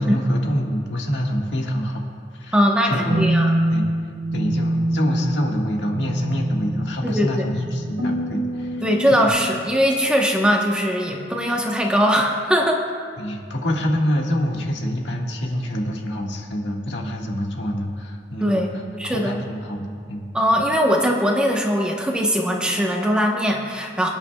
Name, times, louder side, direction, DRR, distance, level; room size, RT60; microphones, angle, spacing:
voice 1, 0.0-2.6 2.8-3.3 3.7-3.9 4.3-9.3 13.2-20.3, equal, 90° left, 0 dB, 1.6 m, -26 dB
voice 2, 2.5-3.6 7.0-7.3 8.8-12.8 18.4-18.7 19.0-19.4 20.3-24.1, equal, 5° right, 0 dB, 0.9 m, -20 dB
sound 1, 3.1-9.3, right 1 dB, 85° right, 3.4 m, -25 dB
24.5 x 9.7 x 2.3 m, 2.2 s
head